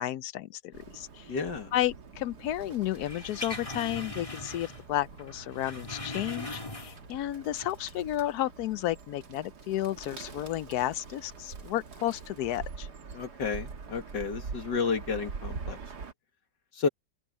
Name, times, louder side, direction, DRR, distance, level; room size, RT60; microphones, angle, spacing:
voice 1, 0.0-1.3 1.7-12.9, left 13 dB, 70° left, 1.1 m, -32 dB
Bird, 0.7-16.1, right 5 dB, 70° right, 2.3 m, -45 dB
voice 2, 1.3-1.7 13.1-16.1 16.7-16.9, left 5 dB, 90° left, 2.7 m, -32 dB
sound 1, 3.0-4.9 5.2-7.2 7.5-7.7, left 2 dB, 20° left, 2.4 m, -40 dB
open air
omnidirectional pair, 1.8 m